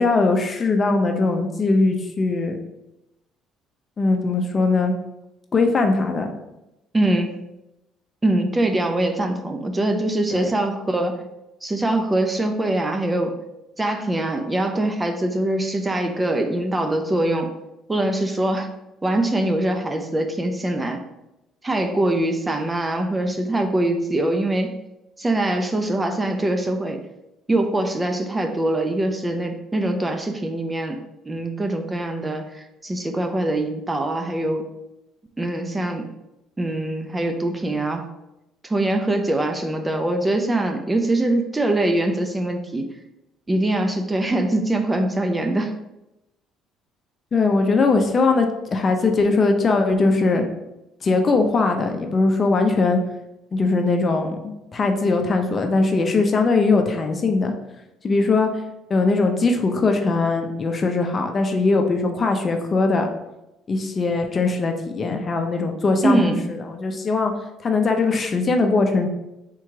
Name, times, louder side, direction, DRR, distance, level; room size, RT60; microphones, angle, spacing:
voice 1, 0.0-2.6 4.0-4.9 5.5-6.3 10.3-10.5 47.3-50.4 51.0-53.0 53.5-57.5 58.0-58.5 58.9-63.1 63.7-67.3 67.6-69.1, left 3 dB, 35° left, 5 dB, 0.6 m, -20 dB
voice 2, 6.9-7.5 8.2-11.2 11.6-13.4 13.8-17.5 17.9-18.7 19.0-21.0 21.6-24.7 25.2-27.0 27.5-31.0 31.3-34.7 35.4-36.1 36.6-38.1 38.6-42.9 43.5-45.7 66.0-66.5, right 1 dB, 20° right, 5 dB, 0.5 m, -23 dB
3.8 x 3.0 x 4.6 m, 0.92 s
supercardioid pair, 85°, 0 cm